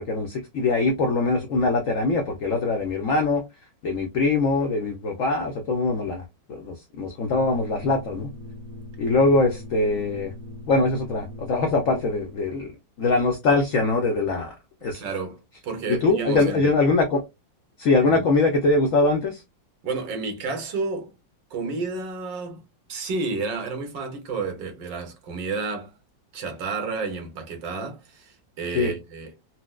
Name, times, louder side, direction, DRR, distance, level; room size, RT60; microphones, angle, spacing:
voice 1, 0.0-3.4 3.8-6.2 6.5-8.3 9.0-10.3 10.7-12.7 13.0-14.5 14.8-15.0 15.9-17.2 17.8-19.4 28.7-28.9, left 3 dB, 80° left, 0.7 m, -22 dB
sound 1, 7.3-12.7, left 1 dB, 55° right, 1.2 m, -41 dB
voice 2, 14.9-16.7 18.0-18.3 19.8-21.1 21.5-22.6 22.9-25.9 26.3-29.3, right 4 dB, 75° right, 1.6 m, -31 dB
4.3 x 2.0 x 2.2 m
omnidirectional pair, 2.0 m